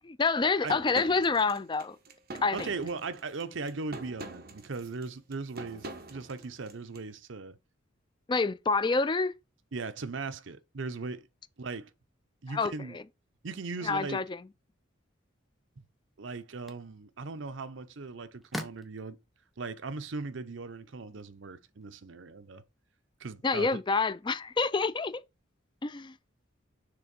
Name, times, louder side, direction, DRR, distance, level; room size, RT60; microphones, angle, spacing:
voice 1, 0.0-2.0 2.4-2.7 8.3-9.3 12.5-12.7 13.8-14.2 23.4-25.2 25.8-26.1, left 4 dB, 25° left, 0.4 m, -27 dB
sound 1, 0.7-7.0, right 2 dB, 50° right, 1.1 m, -44 dB
voice 2, 2.5-7.6 9.7-11.3 11.6-11.9 12.4-13.0 13.4-14.2 16.2-19.2 19.6-22.6 23.2-23.8, right 4 dB, 65° right, 0.7 m, -38 dB
sound 2, 15.7-21.9, left 1 dB, ahead, 0.8 m, -48 dB
6.8 x 3.3 x 5.2 m
head